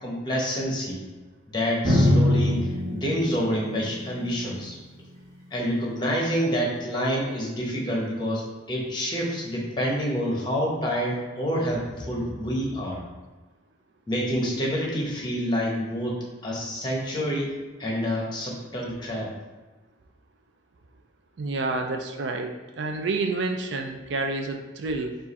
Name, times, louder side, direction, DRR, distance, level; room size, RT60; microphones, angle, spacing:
voice 1, 0.0-1.0 1.5-4.8 5.5-13.0 14.1-17.5 17.8-19.3, equal, 25° left, -3 dB, 0.9 m, -28 dB
Drum, 1.8-5.4, left 1 dB, 15° right, 1.4 m, -24 dB
voice 2, 21.4-25.2, right 3 dB, 60° right, 4 dB, 0.4 m, -29 dB
4.7 x 2.5 x 4.1 m, 1.2 s
head